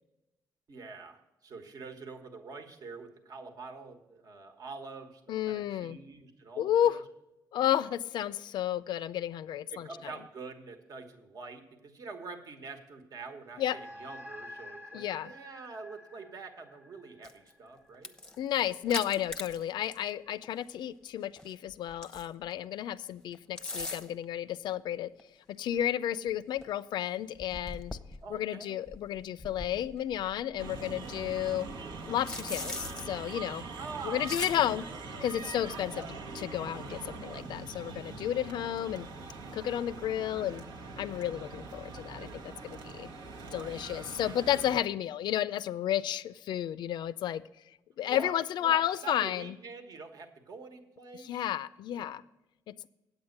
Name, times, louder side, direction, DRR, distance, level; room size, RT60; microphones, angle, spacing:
voice 1, 0.7-7.0 8.3-8.4 9.7-18.1 28.2-28.8 33.8-35.0 35.9-36.1 43.4-43.9 44.2-44.5 48.0-48.3 48.6-51.4 51.9-52.1, right 4 dB, 55° right, 5 dB, 1.2 m, -46 dB
voice 2, 5.3-6.0 6.6-7.0 7.5-10.1 13.6-13.8 14.9-15.3 18.4-25.1 25.5-28.0 28.3-31.7 32.1-33.6 34.0-34.9 35.2-39.1 39.5-40.6 41.0-43.1 43.5-47.4 48.0-49.6 51.1-52.2 52.7-52.9, left 11 dB, 80° left, 16 dB, 0.4 m, -32 dB
sound 1, 13.5-18.2, left 1 dB, 30° right, 1.0 m, -49 dB
sound 2, 17.2-17.5 17.9-20.1 20.4-20.6 21.4-22.5 23.3-24.2 25.2-25.3 25.8-25.9 26.3-26.4 26.6-26.7 27.4-28.4 28.9-30.7 31.1-33.0 34.2-34.6, left 2 dB, 10° left, 0.7 m, -41 dB
sound 3, 30.6-44.8, right 3 dB, 85° right, 1.1 m, -43 dB
8.8 x 8.3 x 6.5 m, 0.97 s
cardioid pair, 110°, 8 cm